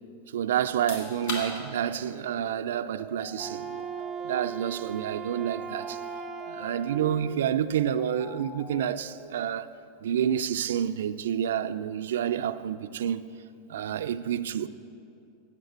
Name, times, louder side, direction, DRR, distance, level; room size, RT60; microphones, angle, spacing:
voice 1, 0.3-3.9 4.2-6.0 6.5-9.7 10.0-13.3 13.7-14.7, right 9 dB, 85° right, 0.4 m, -29 dB
sound 1, 0.6-13.3, left 2 dB, 80° left, 3.0 m, -47 dB
sound 2, 0.7-9.3, left 1 dB, 20° left, 1.0 m, -46 dB
Wind instrument woodwind instrument, 3.3-7.4, right 8 dB, 15° right, 0.4 m, -38 dB
8.7 x 8.2 x 7.8 m
supercardioid pair, 160°, 0 cm